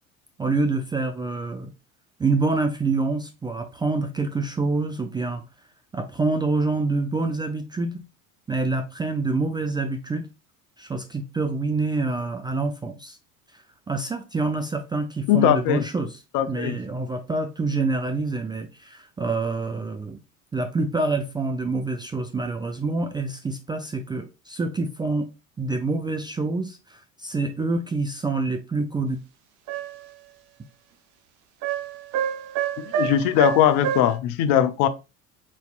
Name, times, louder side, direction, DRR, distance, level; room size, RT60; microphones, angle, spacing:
voice 1, 0.4-1.7 2.2-5.4 5.9-8.0 8.5-10.3 10.8-13.2 13.9-16.1 16.5-20.2 20.5-25.3 25.6-29.2, right 3 dB, 10° right, 0.3 m, -26 dB
voice 2, 15.3-15.8 16.3-16.8 32.9-34.9, left 11 dB, 55° left, 0.6 m, -20 dB
sound 1, 29.7-30.1 31.6-34.2, right 9 dB, 50° right, 0.8 m, -28 dB
4.1 x 4.1 x 2.3 m
figure-of-eight pair, 65°, 41 cm